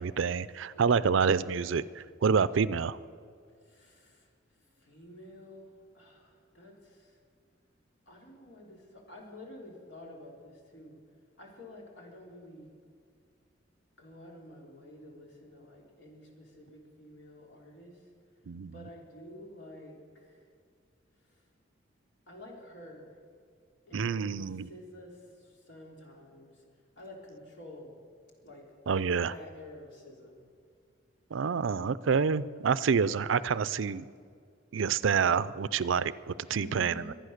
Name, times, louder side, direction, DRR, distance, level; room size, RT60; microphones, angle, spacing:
voice 1, 0.0-3.0 18.5-18.7 23.9-24.7 28.9-29.3 31.3-34.0 34.7-37.1, right 6 dB, 75° right, 17 dB, 0.5 m, -28 dB
voice 2, 0.7-1.2 3.6-4.3 4.6-7.2 8.1-11.0 11.4-12.7 14.0-18.0 18.7-20.5 22.3-23.1 23.9-26.6 27.0-27.9 28.4-28.7 29.3-30.4 36.6-37.1, left 1 dB, 65° left, 0 dB, 3.4 m, -50 dB
23.5 x 9.1 x 6.5 m, 2.2 s
head